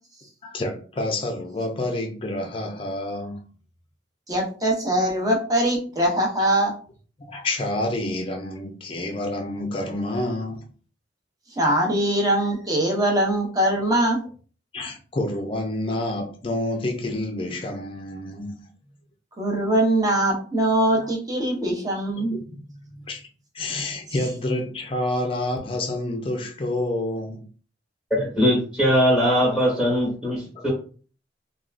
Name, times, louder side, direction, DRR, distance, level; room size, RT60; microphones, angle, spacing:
voice 1, 0.4-3.5 7.3-10.7 14.7-18.7 21.0-21.1 22.2-23.3 23.5-27.5, left 1 dB, 30° left, 0.5 m, -28 dB
voice 2, 4.3-6.7 11.6-14.2 19.4-22.4, right 1 dB, 20° right, 0.7 m, -22 dB
voice 3, 28.1-30.7, equal, ahead, 1.2 m, -21 dB
3.5 x 2.3 x 2.4 m
head